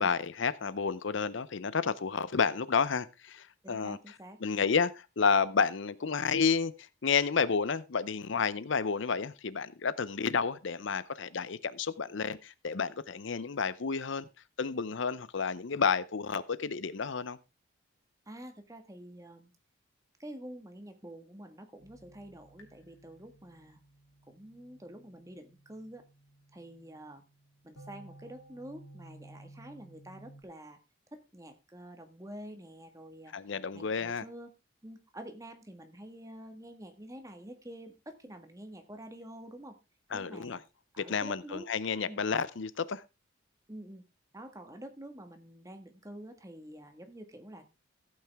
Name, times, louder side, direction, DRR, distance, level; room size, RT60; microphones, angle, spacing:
voice 1, 0.0-4.0 4.4-14.2 14.6-17.4 33.3-34.2 40.1-40.6 41.0-43.0, left 5 dB, 60° left, 0.6 m, -31 dB
voice 2, 3.6-4.4 18.3-19.5 20.2-23.8 24.3-26.1 26.5-27.2 27.6-30.8 31.1-33.3 33.7-34.5 34.8-39.8 40.1-40.6 40.9-41.7 42.1-42.2 43.7-44.0 44.3-47.6, right 1 dB, 15° right, 1.6 m, -47 dB
sound 1, 21.8-30.4, right 1 dB, 80° left, 3.0 m, -56 dB
15.0 x 8.8 x 3.5 m
head